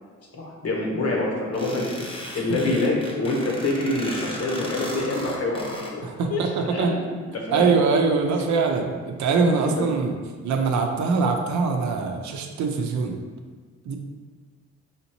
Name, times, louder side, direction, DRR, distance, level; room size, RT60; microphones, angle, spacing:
voice 1, 0.3-7.7 9.6-9.7, left 2 dB, 55° left, -1 dB, 1.0 m, -26 dB
sound 1, 1.5-5.9, left 1 dB, 20° left, 0.8 m, -36 dB
voice 2, 6.0-7.0 7.5-10.1 10.4-13.2 13.9-14.0, right 4 dB, 70° right, 3 dB, 0.6 m, -23 dB
5.0 x 2.7 x 2.9 m, 1.5 s
cardioid pair, 90°, 30 cm